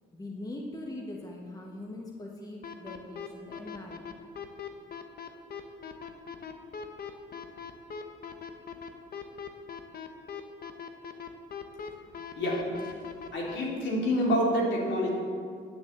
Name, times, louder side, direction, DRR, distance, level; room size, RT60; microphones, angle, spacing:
voice 1, 0.1-4.0, left 1 dB, 20° left, -1 dB, 1.4 m, -41 dB
sound 1, 2.6-13.6, left 7 dB, 50° left, 1.1 m, -40 dB
voice 2, 12.3-12.9 13.3-15.1, equal, 65° left, -3 dB, 3.4 m, -27 dB
9.2 x 6.9 x 8.0 m, 2.2 s
cardioid pair, 90°, 20 cm